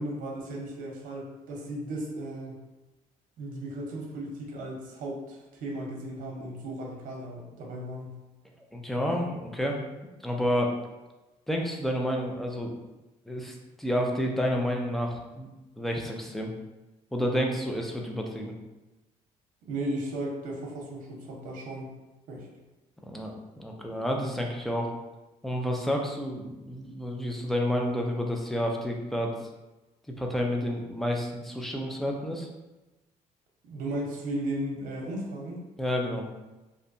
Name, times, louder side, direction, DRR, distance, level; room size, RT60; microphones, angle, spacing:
voice 1, 0.0-2.6 3.4-8.2 19.7-22.0 22.3-22.5 33.6-35.6, right 1 dB, 80° right, -1 dB, 0.7 m, -35 dB
voice 2, 8.7-9.8 10.2-10.7 11.5-12.7 13.3-15.5 15.8-16.5 17.1-18.5 23.0-23.3 23.6-24.9 25.4-29.3 30.2-32.5 35.8-36.3, equal, ahead, 0 dB, 0.4 m, -30 dB
2.6 x 2.2 x 2.6 m, 1.1 s
cardioid pair, 115°, 14 cm